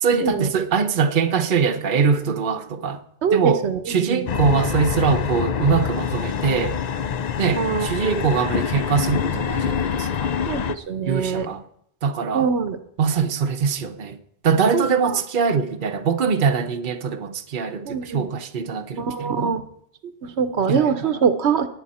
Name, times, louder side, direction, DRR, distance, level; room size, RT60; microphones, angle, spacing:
voice 1, 0.0-3.0 3.3-6.8 7.4-10.3 11.0-11.6 12.0-12.5 13.0-14.2 14.4-19.6 20.7-21.2, right 6 dB, 50° right, 1.0 m, -23 dB
voice 2, 3.2-4.3 7.6-8.1 10.5-11.5 12.3-12.8 14.7-14.8 17.8-18.3 19.0-19.6 20.2-21.7, right 6 dB, 80° right, 1.2 m, -23 dB
sound 1, 4.3-10.7, left 7 dB, 50° left, 0.5 m, -25 dB
18.0 x 9.8 x 4.2 m
omnidirectional pair, 1.1 m